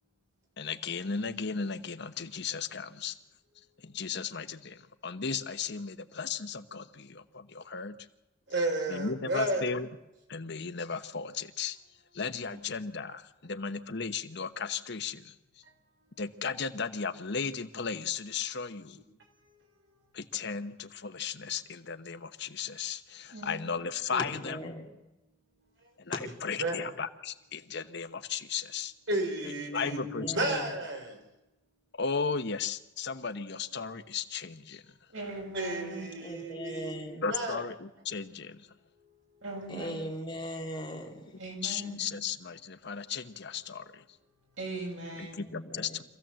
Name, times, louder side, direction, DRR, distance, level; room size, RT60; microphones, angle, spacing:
voice 1, 0.6-3.2 3.8-8.0 8.9-9.9 10.3-11.8 12.1-15.3 16.2-19.0 20.1-24.6 26.0-28.9 29.4-30.6 32.0-34.8 37.2-38.7 41.6-44.0 45.2-46.0, left 5 dB, 60° left, 1.0 m, -35 dB
voice 2, 8.5-9.8 26.6-26.9 29.1-31.2 35.5-37.0 37.3-37.6, right 1 dB, 70° right, 4.8 m, -32 dB
voice 3, 23.3-23.7 35.1-36.1 39.4-40.0 41.4-42.2 44.6-45.4, right 2 dB, 85° right, 7.4 m, -40 dB
voice 4, 24.1-25.0 26.1-26.2 29.8-30.7 36.2-37.3 39.7-41.4 45.4-46.0, equal, 25° left, 2.9 m, -39 dB
26.0 x 15.5 x 7.7 m
head